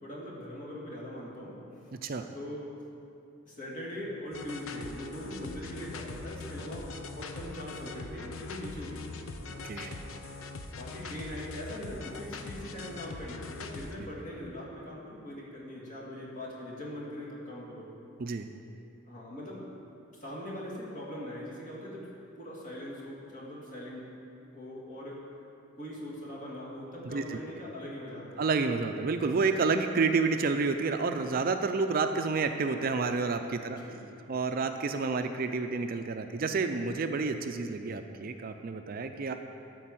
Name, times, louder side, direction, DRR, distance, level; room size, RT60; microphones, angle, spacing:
voice 1, 0.0-2.6 3.4-9.1 10.7-17.9 19.0-19.6 20.2-22.0 22.4-24.0 24.5-25.2 25.8-28.4 33.6-34.0, left 1 dB, 40° left, -5 dB, 2.3 m, -41 dB
sound 1, 4.3-13.9, left 3 dB, 85° left, 0.7 m, -42 dB
voice 2, 9.6-10.0 14.0-14.1 18.2-18.5 27.0-27.4 28.4-33.8 34.3-39.3, right 4 dB, 45° right, 7 dB, 0.4 m, -29 dB
12.5 x 4.6 x 7.6 m, 2.7 s
head